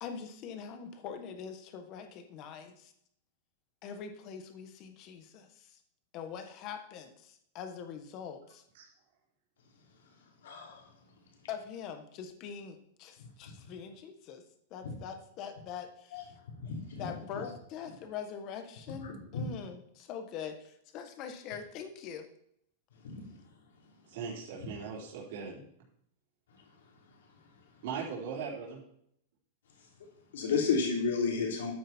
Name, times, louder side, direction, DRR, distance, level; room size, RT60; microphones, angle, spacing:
voice 1, 0.0-2.9 3.8-5.8 6.1-8.6 11.5-14.4 14.7-16.3 17.0-22.3, left 7 dB, 30° left, 8 dB, 1.3 m, -43 dB
voice 2, 10.4-10.8 14.8-14.9 16.1-16.2 16.6-17.1 17.4-17.5 19.0-19.4 23.0-23.2 30.3-31.7, left 5 dB, 80° left, -1 dB, 3.7 m, -32 dB
voice 3, 24.1-25.6 27.8-28.8, right 6 dB, 50° right, -5 dB, 4.0 m, -39 dB
12.5 x 9.1 x 4.4 m, 0.70 s
supercardioid pair, 175°, 0 cm